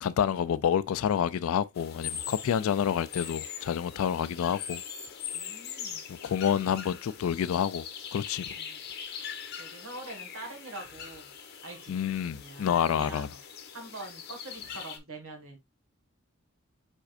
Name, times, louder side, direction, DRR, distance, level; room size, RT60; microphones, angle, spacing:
voice 1, 0.0-4.8 6.1-7.8 8.1-8.4 11.9-13.3, left 8 dB, 75° left, 0.3 m, -28 dB
sound 1, 1.7-15.0, left 8 dB, 45° left, 0.8 m, -41 dB
voice 2, 5.3-6.1 8.5-8.8 9.6-11.3 11.6-12.0 12.3-13.4 13.7-15.6, right 2 dB, 75° right, 1.7 m, -44 dB
4.8 x 4.4 x 2.4 m
head